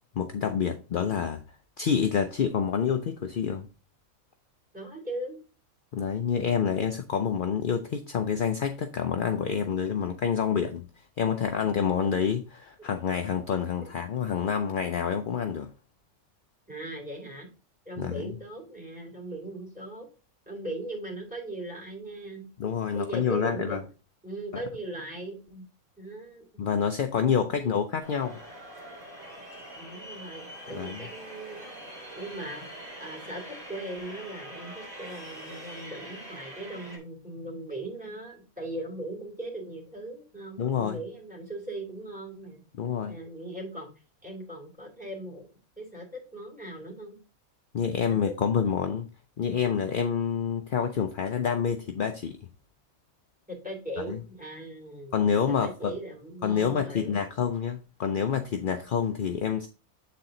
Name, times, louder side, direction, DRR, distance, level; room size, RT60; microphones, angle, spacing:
voice 1, 0.1-1.4 1.8-3.7 5.9-10.8 11.2-15.7 18.0-18.4 22.6-23.8 24.5-24.6 26.6-28.4 30.7-31.0 40.6-41.0 42.7-43.1 47.7-49.1 49.4-52.4 54.1-54.2 55.1-55.9 56.4-59.7, left 7 dB, 55° left, 0.6 m, -27 dB
voice 2, 4.7-5.4 12.8-12.9 16.7-17.5 17.8-20.1 20.5-22.5 22.9-23.8 24.2-25.6 26.0-26.6 27.5-27.7 29.7-31.9 32.1-32.7 33.0-42.6 43.1-43.9 44.2-45.5 45.8-47.2 48.1-48.3 53.5-57.2, right 1 dB, 5° right, 3.0 m, -39 dB
sound 1, 28.0-37.0, equal, 25° right, 3.3 m, -44 dB
8.0 x 4.3 x 3.8 m
omnidirectional pair, 1.5 m